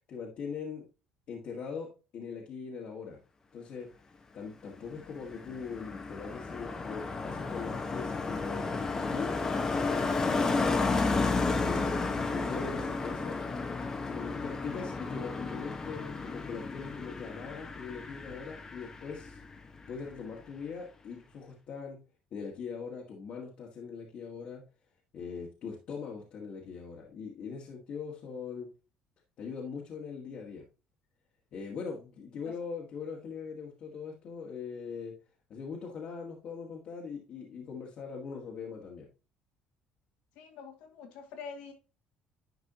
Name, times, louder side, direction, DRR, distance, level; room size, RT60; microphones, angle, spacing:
voice 1, 0.1-0.9 1.3-3.2 3.5-3.9 4.3-11.9 12.3-13.4 14.1-19.4 19.9-22.0 22.3-24.6 25.1-28.7 29.4-30.6 31.5-35.1 35.5-39.1, left 5 dB, 55° left, 1.8 m, -41 dB
Car passing by, 4.8-19.6 19.8-20.2, left 3 dB, 25° left, 1.2 m, -32 dB
voice 2, 40.4-41.7, left 5 dB, 80° left, 2.1 m, -45 dB
10.5 x 4.8 x 2.9 m
cardioid pair, 105°, 2 cm